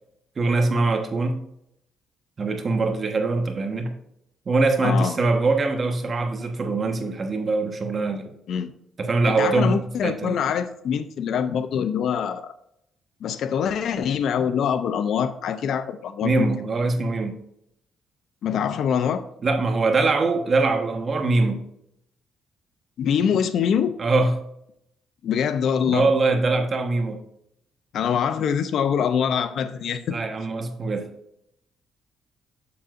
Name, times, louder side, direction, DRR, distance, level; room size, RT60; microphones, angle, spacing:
voice 1, 0.4-1.4 2.4-3.9 4.5-8.3 9.0-10.4 16.2-17.4 19.4-21.6 24.0-24.4 25.9-27.2 30.1-31.1, right 3 dB, 40° right, 5 dB, 1.2 m, -23 dB
voice 2, 4.8-5.2 8.5-8.7 9.2-12.5 13.2-16.5 18.4-19.2 23.0-24.0 25.2-26.1 27.9-30.2, left 8 dB, 70° left, 11 dB, 0.5 m, -24 dB
7.5 x 7.0 x 2.5 m, 0.77 s
cardioid pair, 90°, 0 cm